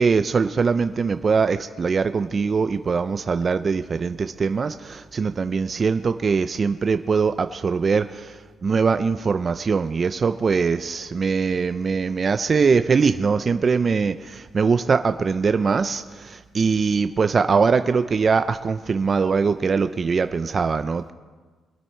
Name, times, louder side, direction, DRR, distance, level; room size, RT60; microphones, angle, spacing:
voice 1, 0.0-21.1, right 5 dB, 40° right, 10 dB, 0.5 m, -22 dB
23.0 x 9.4 x 4.5 m, 1.4 s
cardioid pair, 90°, 0 cm